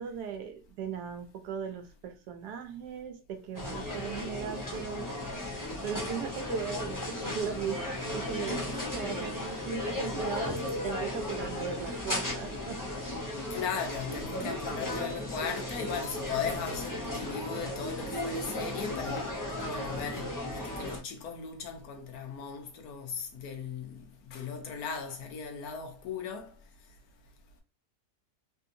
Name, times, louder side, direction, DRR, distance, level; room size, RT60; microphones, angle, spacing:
voice 1, 0.0-5.1 5.8-13.4, right 7 dB, 90° right, 1.2 m, -38 dB
sound 1, 3.5-21.0, left 1 dB, 25° left, 0.4 m, -35 dB
voice 2, 13.5-24.0 24.3-26.5, left 6 dB, 70° left, 1.2 m, -38 dB
3.3 x 2.7 x 2.5 m
omnidirectional pair, 1.7 m